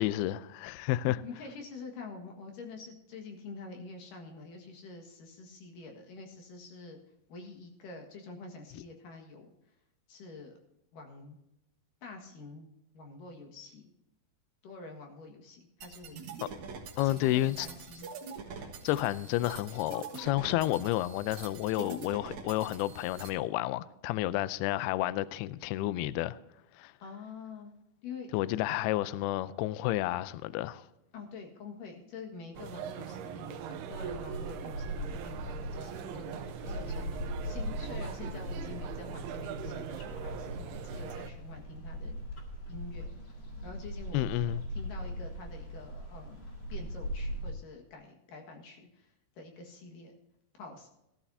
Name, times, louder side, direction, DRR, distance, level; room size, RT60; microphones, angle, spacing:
voice 1, 0.0-1.2 16.4-16.5 17.0-17.7 18.8-26.4 26.8-26.9 28.3-30.8 44.1-44.6, left 15 dB, 90° left, 2.2 m, -30 dB
voice 2, 1.1-7.0 7.3-9.5 10.1-10.6 10.9-11.4 12.0-13.8 14.6-16.6 17.0-18.1 21.8-22.0 27.0-27.7 28.0-28.3 31.1-42.1 42.7-43.1 43.6-46.4 46.7-50.2 50.6-50.9, left 3 dB, 60° left, 2.8 m, -47 dB
sound 1, 15.8-23.3, right 5 dB, 60° right, 2.0 m, -45 dB
sound 2, 32.5-41.3, right 8 dB, 80° right, 2.6 m, -41 dB
sound 3, 33.9-47.5, equal, 40° left, 2.1 m, -40 dB
18.0 x 12.5 x 2.7 m
omnidirectional pair, 5.2 m